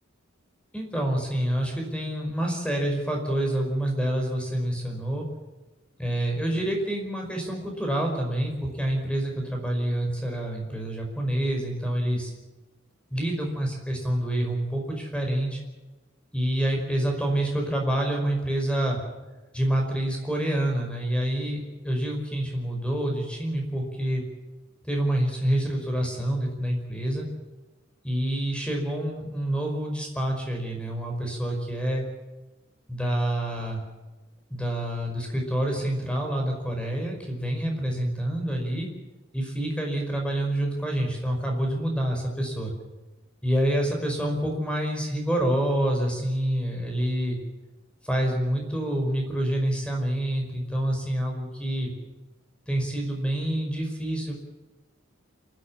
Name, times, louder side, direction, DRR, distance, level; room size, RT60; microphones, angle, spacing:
voice 1, 0.7-5.3 6.0-12.3 13.1-15.6 16.3-19.0 19.5-24.2 24.8-27.3 28.0-32.1 32.9-33.8 34.5-38.9 39.3-42.7 43.4-47.4 48.0-51.9 52.7-54.3, right 1 dB, 5° left, 2 dB, 5.3 m, -27 dB
27.0 x 13.0 x 8.8 m, 1.1 s
head